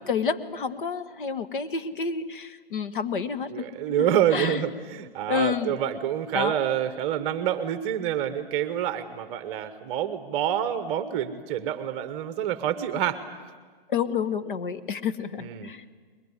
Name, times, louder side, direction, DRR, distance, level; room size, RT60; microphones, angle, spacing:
voice 1, 0.0-4.1 4.3-4.6 5.3-5.7 6.3-6.5 13.9-15.8, left 6 dB, 60° left, 10 dB, 1.5 m, -29 dB
voice 2, 3.5-13.2 15.4-15.7, right 10 dB, 20° right, 11 dB, 1.0 m, -27 dB
22.0 x 20.5 x 9.9 m, 1.5 s
hypercardioid pair, 155°, 29 cm